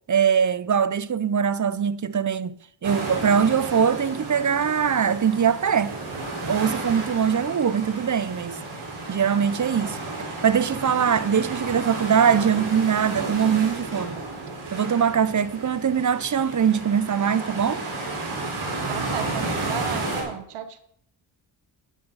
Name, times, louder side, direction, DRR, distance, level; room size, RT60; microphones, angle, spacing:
voice 1, 0.1-6.0 6.5-8.6 9.1-10.0 10.4-14.2 14.7-17.8, right 7 dB, 35° right, 0.7 m, -22 dB
sound 1, 2.8-20.2, right 2 dB, 75° right, 4.9 m, -32 dB
voice 2, 18.9-20.8, right 9 dB, 90° right, 1.2 m, -33 dB
12.0 x 10.5 x 4.1 m
supercardioid pair, 50°, 49 cm